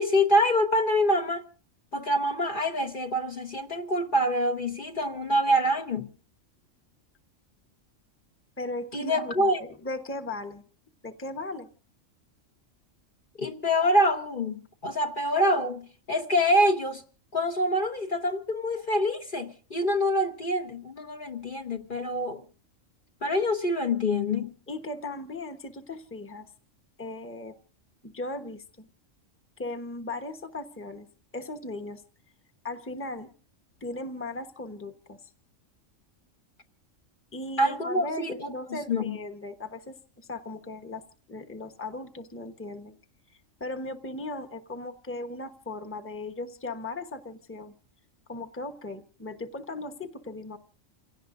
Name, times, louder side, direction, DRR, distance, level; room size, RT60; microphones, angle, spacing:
voice 1, 0.0-1.4 1.9-6.1 8.9-9.6 13.4-17.0 17.3-22.4 23.2-24.5 37.6-39.2, equal, 45° left, 1.1 m, -26 dB
voice 2, 8.6-10.6 11.0-11.7 24.7-26.5 27.0-27.6 28.0-28.9 29.6-31.1 31.3-32.0 32.6-33.3 33.8-35.3 37.3-41.0 41.3-43.0 43.6-47.7 48.3-50.6, left 2 dB, 10° left, 1.0 m, -37 dB
29.0 x 17.0 x 2.6 m
omnidirectional pair, 1.3 m